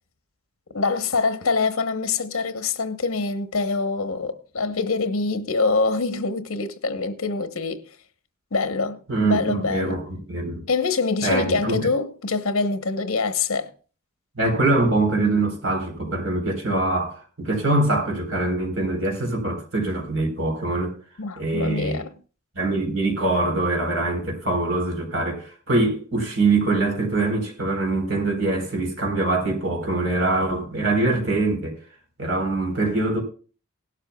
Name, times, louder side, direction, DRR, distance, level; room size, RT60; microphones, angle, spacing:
voice 1, 0.7-7.8 8.5-10.0 10.7-13.7 21.2-22.1, left 4 dB, 70° left, 1.0 m, -25 dB
voice 2, 9.1-10.6 11.2-11.9 14.4-21.0 21.4-22.0 22.6-31.8 32.2-33.2, right 2 dB, 60° right, 3.9 m, -23 dB
18.0 x 12.0 x 2.3 m
head